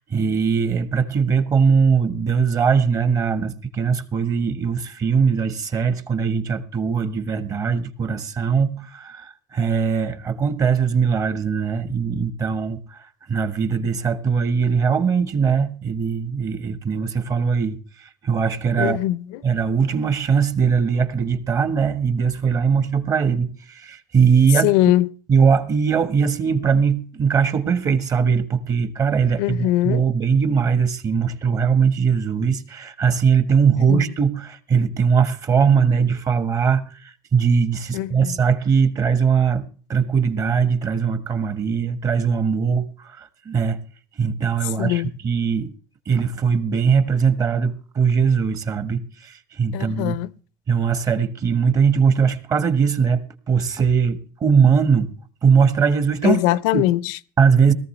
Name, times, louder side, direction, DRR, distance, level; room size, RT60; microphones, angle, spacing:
voice 1, 0.0-19.0 19.4-24.7 25.3-43.8 44.2-45.7 46.1-50.2 50.7-55.1 55.4-56.4 56.7-56.8 57.4-57.7, right 6 dB, 35° right, 1.5 m, -20 dB
voice 2, 18.8-19.4 24.6-25.1 29.4-30.0 33.9-34.0 37.9-38.4 44.8-45.1 49.7-50.3 56.2-57.2, left 15 dB, 70° left, 0.6 m, -21 dB
18.0 x 14.0 x 3.3 m
supercardioid pair, 105°, 10 cm